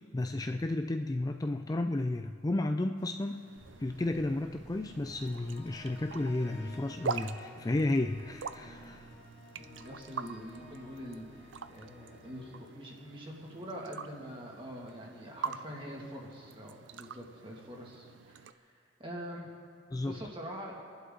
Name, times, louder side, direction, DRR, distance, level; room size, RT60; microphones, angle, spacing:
voice 1, 0.1-3.5 3.8-9.2 19.9-20.2, left 2 dB, 20° left, 6 dB, 0.4 m, -32 dB
sound 1, 3.0-18.5, right 5 dB, 80° right, 0.5 m, -44 dB
sound 2, 3.6-13.7, equal, 35° left, 1.7 m, -53 dB
voice 2, 9.6-19.5 20.0-20.8, equal, 30° right, -1 dB, 2.3 m, -45 dB
27.0 x 11.5 x 3.9 m, 2.2 s
head